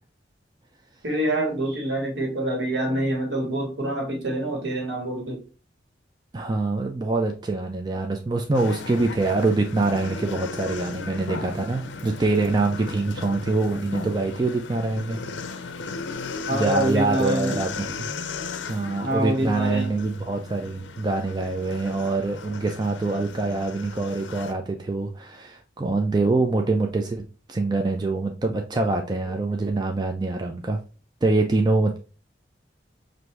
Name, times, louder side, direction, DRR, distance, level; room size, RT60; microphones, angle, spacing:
voice 1, 1.0-5.4 16.5-17.6 19.0-19.9, right 1 dB, 70° right, 1.5 m, -26 dB
voice 2, 6.3-15.2 15.4-15.6 16.5-17.9 18.7-27.2 27.5-30.8 31.2-32.0, right 3 dB, 20° right, 0.3 m, -25 dB
sound 1, 8.5-24.5, left 4 dB, 75° left, 0.5 m, -36 dB
5.7 x 2.6 x 3.2 m
head